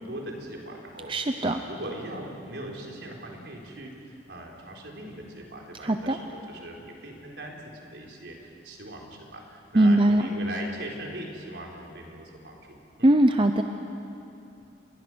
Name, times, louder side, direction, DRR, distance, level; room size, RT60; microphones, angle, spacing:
voice 1, 0.1-13.1, right 1 dB, 70° right, -1 dB, 4.2 m, -40 dB
voice 2, 1.1-1.6 5.8-6.2 9.7-10.2 13.0-13.6, right 1 dB, 30° right, 6 dB, 0.7 m, -20 dB
30.0 x 22.0 x 6.3 m, 2.7 s
head